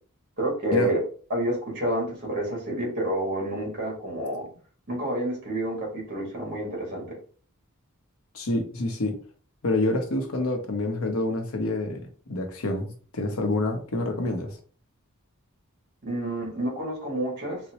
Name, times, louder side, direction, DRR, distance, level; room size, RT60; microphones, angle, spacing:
voice 1, 0.4-1.0 1.3-4.5 4.9-7.2 16.0-17.6, right 1 dB, 50° right, 1.4 m, -29 dB
voice 2, 8.3-9.2 9.6-14.6, left 2 dB, 70° left, 0.7 m, -27 dB
3.9 x 2.1 x 2.8 m
head